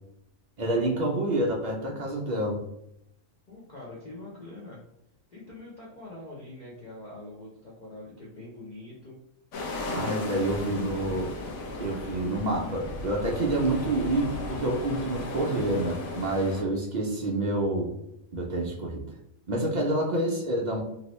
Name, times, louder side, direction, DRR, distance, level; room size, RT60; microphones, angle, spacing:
voice 1, 0.6-2.6 9.9-11.3 11.8-17.9 18.3-19.1 19.5-20.8, right 1 dB, 65° right, -1 dB, 0.4 m, -28 dB
voice 2, 3.5-4.8 5.3-9.2, left 2 dB, 45° left, -5 dB, 0.6 m, -44 dB
sound 1, 9.5-16.6, left 2 dB, 80° left, 1.1 m, -35 dB
2.8 x 2.6 x 3.0 m, 0.81 s
omnidirectional pair, 1.4 m